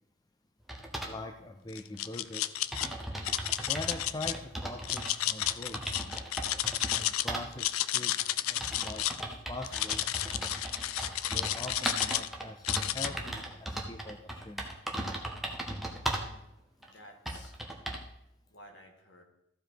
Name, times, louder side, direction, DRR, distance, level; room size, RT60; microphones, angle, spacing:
sound 1, 0.7-1.2 2.1-2.2 2.4-2.5 2.7-5.1 5.4-7.0 7.3-7.5 8.2-16.3 16.8-16.9 17.3-18.1, right 1 dB, ahead, 0.9 m, -37 dB
voice 1, 1.0-2.4 3.7-5.8 6.9-10.0 11.3-12.7 12.9-14.7, left 2 dB, 20° left, 5 dB, 0.4 m, -43 dB
sound 2, 1.7-2.9 3.2-4.3 4.8-7.3 7.5-9.2 9.6-12.3 12.6-13.1, left 13 dB, 85° left, 0.4 m, -31 dB
voice 2, 16.1-16.5 16.8-17.6 18.5-19.2, left 1 dB, 55° left, 2 dB, 1.8 m, -54 dB
13.5 x 5.0 x 4.6 m, 0.84 s
head